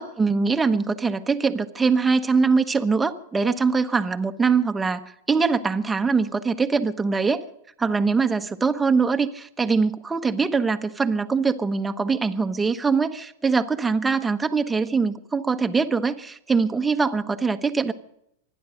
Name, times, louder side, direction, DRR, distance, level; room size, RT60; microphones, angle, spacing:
voice 1, 0.0-5.0 5.3-7.4 7.8-17.9, right 4 dB, 15° right, 8 dB, 1.1 m, -22 dB
25.5 x 10.5 x 5.1 m, 0.75 s
hypercardioid pair, 110°, 0 cm